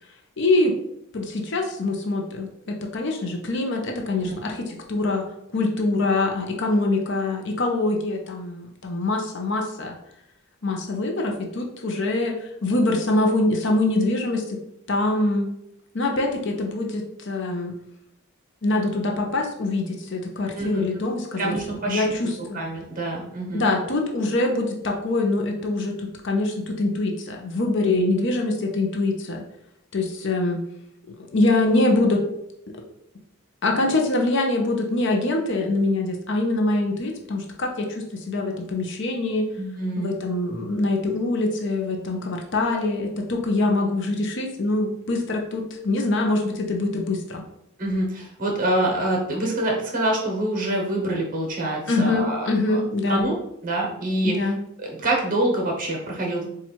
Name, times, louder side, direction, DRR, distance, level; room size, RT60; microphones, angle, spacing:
voice 1, 0.4-0.8 1.1-5.3 5.5-10.0 10.6-14.6 14.9-15.5 15.9-17.7 18.6-21.5 21.9-22.6 23.5-29.4 29.9-30.6 31.2-32.2 33.6-39.5 40.0-47.4 51.9-53.3 54.2-54.6, left 2 dB, 55° left, 2 dB, 0.6 m, -24 dB
voice 2, 20.5-20.9 21.4-22.1 22.5-23.7 27.8-28.1 39.6-40.1 47.8-52.8 53.1-53.3 53.6-54.3 54.8-56.5, right 1 dB, 40° right, 0 dB, 1.0 m, -26 dB
4.3 x 2.4 x 4.3 m, 0.79 s
head